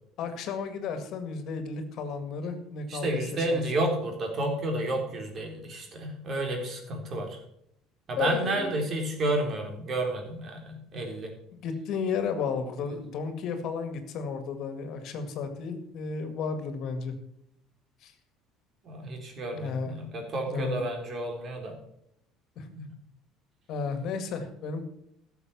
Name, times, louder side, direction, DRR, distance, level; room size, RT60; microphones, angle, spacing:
voice 1, 0.2-3.9 8.2-8.8 11.5-17.2 18.0-18.1 19.5-20.0 20.5-20.8 22.6-22.7 23.7-24.9, left 5 dB, 65° left, 8 dB, 1.9 m, -33 dB
voice 2, 2.9-7.4 8.1-11.3 18.8-21.7 22.7-22.8, right 1 dB, 45° right, 2 dB, 3.8 m, -31 dB
12.0 x 7.1 x 7.1 m, 0.74 s
supercardioid pair, 90°, 0 cm